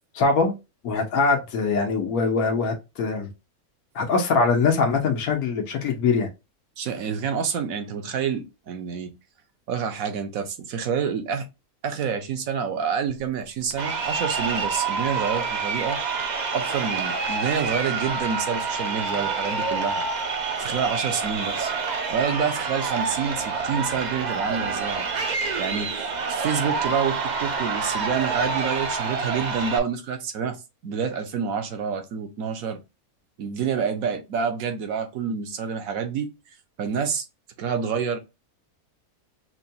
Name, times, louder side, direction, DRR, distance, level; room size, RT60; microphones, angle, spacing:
voice 1, 0.1-0.5 0.8-3.3 3.9-6.3, left 4 dB, 80° left, 1.3 m, -22 dB
voice 2, 6.8-9.1 9.7-11.5 11.8-16.0 16.5-20.0 20.6-21.7 22.1-25.1 25.6-30.6 30.8-32.8 33.4-36.3 36.8-37.2 37.6-38.2, right 6 dB, 70° right, 1.2 m, -28 dB
Crowd, 13.7-29.8, right 4 dB, 50° right, 0.5 m, -27 dB
6.0 x 2.2 x 2.7 m
omnidirectional pair, 1.5 m